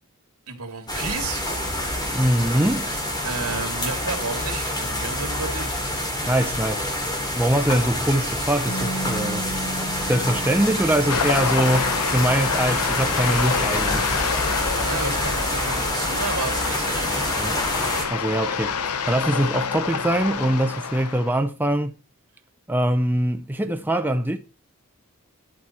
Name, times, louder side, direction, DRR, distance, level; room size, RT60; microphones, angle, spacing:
voice 1, 0.5-1.4 3.2-5.7 14.8-17.7, right 4 dB, 80° right, 2.2 m, -32 dB
sound 1, 0.9-18.1, left 1 dB, 20° left, 2.5 m, -27 dB
voice 2, 2.1-2.9 6.3-6.9 7.3-9.5 10.1-14.1 17.4-18.7 19.1-22.0 22.7-24.4, right 1 dB, 10° right, 0.6 m, -23 dB
Bass guitar, 8.7-14.9, right 2 dB, 65° left, 3.6 m, -37 dB
sound 2, 11.1-21.4, left 6 dB, 85° left, 0.7 m, -27 dB
11.5 x 6.0 x 4.3 m
head